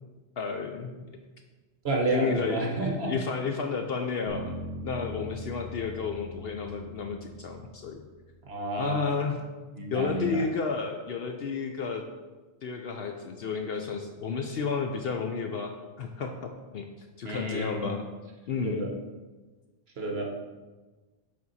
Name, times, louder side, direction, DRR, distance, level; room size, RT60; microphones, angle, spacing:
voice 1, 0.4-0.9 2.1-4.6 4.8-8.0 8.8-9.4 9.9-12.0 12.6-16.9 17.2-18.1 18.5-18.9, left 5 dB, 60° left, 4 dB, 0.7 m, -32 dB
voice 2, 1.8-3.1 8.4-9.2 9.7-10.4 17.2-17.9 18.6-18.9 20.0-20.3, right 2 dB, 55° right, 0 dB, 1.3 m, -30 dB
sound 1, 4.3-8.4, left 1 dB, 80° left, 1.3 m, -41 dB
7.1 x 4.6 x 4.1 m, 1.3 s
omnidirectional pair, 1.3 m